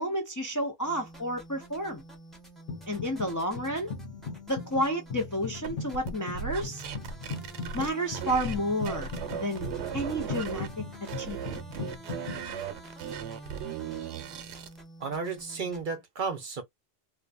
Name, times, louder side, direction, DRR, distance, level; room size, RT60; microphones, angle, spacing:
voice 1, 0.0-2.0 2.9-3.9 4.5-6.8 7.7-9.1 9.4-9.7 9.9-10.7 11.2-11.6, equal, 25° left, 0.4 m, -31 dB
sound 1, 0.8-15.8, right 1 dB, ahead, 0.9 m, -48 dB
sound 2, 2.7-3.3 3.6-12.4, left 4 dB, 55° left, 0.8 m, -39 dB
sound 3, 5.6-8.6 8.9-10.7 11.1-14.8, right 7 dB, 85° right, 0.9 m, -37 dB
voice 2, 15.0-16.6, right 5 dB, 55° right, 0.8 m, -33 dB
2.5 x 2.1 x 2.4 m
omnidirectional pair, 1.1 m